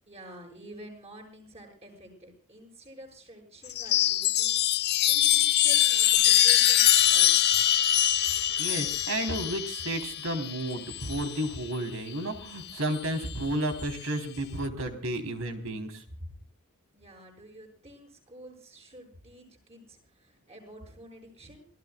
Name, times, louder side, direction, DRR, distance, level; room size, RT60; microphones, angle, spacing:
voice 1, 0.1-4.6 5.1-7.7 16.9-21.7, right 1 dB, 30° right, 2 dB, 8.0 m, -49 dB
Chime, 3.7-11.5 12.7-13.3, left 11 dB, 50° left, 1.0 m, -24 dB
voice 2, 8.6-16.0, right 1 dB, 70° right, 6 dB, 3.9 m, -32 dB
27.5 x 17.5 x 2.4 m, 0.41 s
head